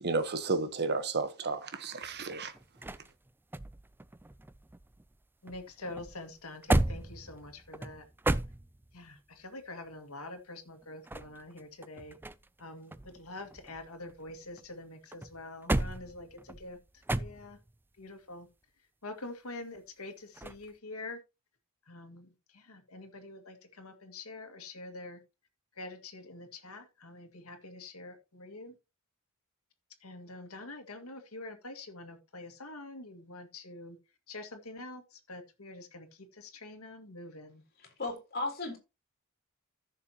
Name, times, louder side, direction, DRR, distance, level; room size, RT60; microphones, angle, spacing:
voice 1, 0.0-2.5, right 3 dB, 50° right, 1.1 m, -32 dB
sound 1, 2.0-5.2 5.5-9.1 10.8-12.6 12.9-14.7 15.1-17.7 20.4-20.7, right 1 dB, 10° right, 0.4 m, -35 dB
voice 2, 5.4-8.0 8.9-12.2 12.6-16.8 17.1-17.6 18.0-18.5 19.0-21.2 21.9-25.2 25.8-28.8 30.0-34.0 34.3-37.6, left 2 dB, 75° left, 2.0 m, -46 dB
voice 3, 37.8-38.8, left 2 dB, 45° left, 3.7 m, -36 dB
14.5 x 6.7 x 3.0 m
head